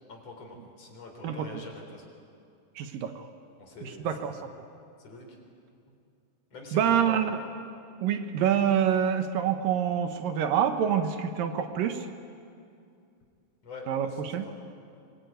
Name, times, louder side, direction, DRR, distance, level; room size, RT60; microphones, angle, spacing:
voice 1, 0.1-2.0 3.6-4.4 5.0-5.4 6.5-7.5 13.6-14.5, left 3 dB, 45° left, 2 dB, 4.8 m, -45 dB
voice 2, 2.8-3.3 3.8-4.4 6.7-7.4 8.0-12.1 13.9-14.5, right 8 dB, 75° right, 7 dB, 2.8 m, -26 dB
24.5 x 22.0 x 9.4 m, 2.5 s
omnidirectional pair, 4.1 m